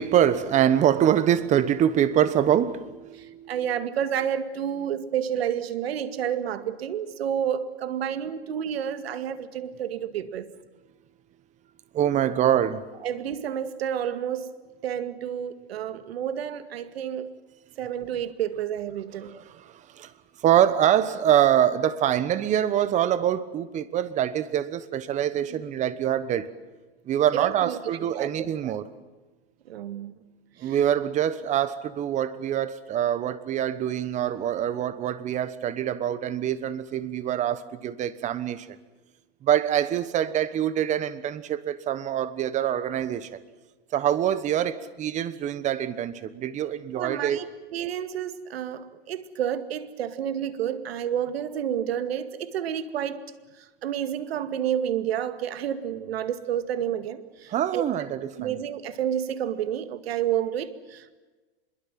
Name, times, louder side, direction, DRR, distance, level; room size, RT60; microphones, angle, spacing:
voice 1, 0.0-3.6 11.9-12.8 19.2-20.1 20.4-26.5 27.1-28.8 30.6-38.7 39.4-43.4 43.9-47.4 57.5-58.6, right 10 dB, 25° right, 1.2 m, -25 dB
voice 2, 3.1-10.5 13.0-14.5 14.8-17.4 17.8-19.3 25.5-25.6 27.3-28.7 29.7-30.1 30.6-30.8 46.9-53.2 53.6-57.8 58.4-61.2, right 9 dB, 70° right, 2.1 m, -30 dB
25.5 x 22.0 x 7.6 m
hypercardioid pair, 145°, 31 cm